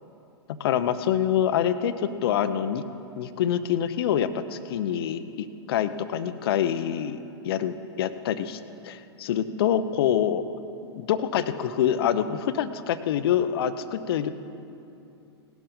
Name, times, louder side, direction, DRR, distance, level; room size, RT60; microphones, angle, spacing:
voice 1, 0.5-2.8 3.2-7.2 7.4-10.4 10.9-14.3, left 9 dB, 60° left, 11 dB, 0.8 m, -26 dB
18.5 x 12.0 x 3.9 m, 2.7 s
hypercardioid pair, 105°, 14 cm